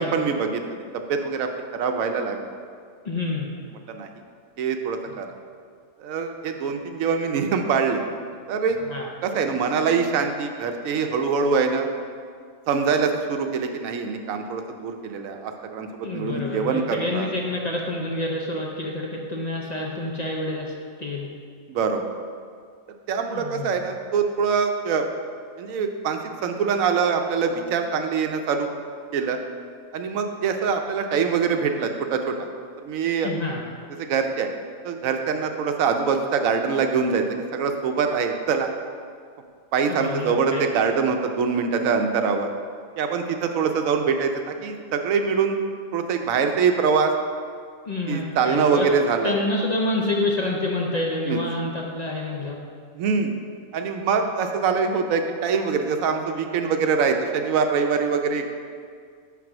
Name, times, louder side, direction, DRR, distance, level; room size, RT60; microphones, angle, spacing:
voice 1, 0.0-2.4 3.9-4.1 4.6-5.3 6.0-8.0 8.5-8.8 9.2-11.9 12.7-17.3 21.7-22.0 23.1-25.0 25.6-28.7 29.1-29.4 29.9-32.4 32.8-33.3 34.0-34.5 34.8-37.3 37.5-38.7 39.7-42.5 43.0-45.6 45.9-47.1 48.1-49.3 51.3-51.4 52.9-53.3 53.7-58.4, right 5 dB, 90° right, 5 dB, 1.1 m, -24 dB
voice 2, 3.0-3.5 8.9-9.0 16.0-20.7 21.0-21.3 23.3-23.8 33.2-33.6 39.9-40.6 47.9-48.9 49.2-52.6, left 2 dB, 40° left, -1 dB, 0.6 m, -28 dB
5.9 x 4.7 x 6.1 m, 2.1 s
omnidirectional pair, 1.4 m